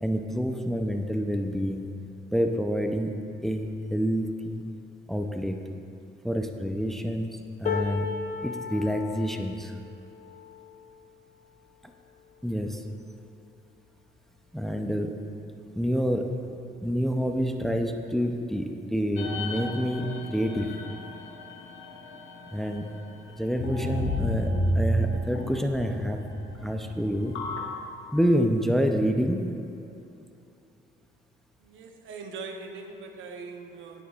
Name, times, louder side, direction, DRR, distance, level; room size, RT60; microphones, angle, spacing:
voice 1, 0.0-1.9 2.3-4.6 5.1-5.6 6.2-8.1 8.4-9.7 12.4-12.8 14.5-15.1 15.7-16.3 16.8-20.7 22.5-22.9 23.4-26.2 26.6-27.4 28.1-29.5, equal, ahead, 4 dB, 0.6 m, -27 dB
sound 1, 7.7-13.8 14.4-14.6 14.9-15.6 16.6-16.7, left 6 dB, 40° left, 0.8 m, -37 dB
sound 2, 19.2-22.8 23.5-27.6, equal, 85° left, 1.0 m, -32 dB
voice 2, 31.6-34.0, right 4 dB, 75° right, 4 dB, 0.9 m, -41 dB
10.0 x 9.9 x 2.4 m, 2.8 s
cardioid pair, 90°, 20 cm